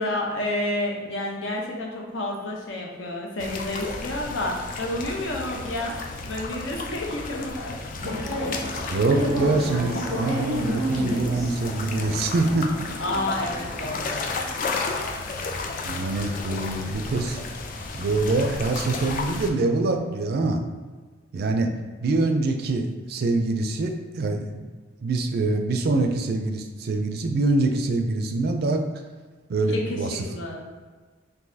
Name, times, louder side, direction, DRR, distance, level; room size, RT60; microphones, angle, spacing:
voice 1, 0.0-6.0 6.3-8.3 13.0-14.3 29.7-30.0 30.3-30.6, left 1 dB, 75° left, 0 dB, 0.7 m, -30 dB
sound 1, 3.4-19.5, left 3 dB, 45° left, 0.3 m, -33 dB
sound 2, 8.0-15.2, equal, 30° left, 1.3 m, -31 dB
voice 2, 8.9-12.7 15.8-17.4 17.9-20.6 21.3-21.7 22.0-24.6 25.0-29.0 29.5-30.2, right 2 dB, 55° right, 5 dB, 0.4 m, -24 dB
3.8 x 2.6 x 2.7 m, 1.4 s
head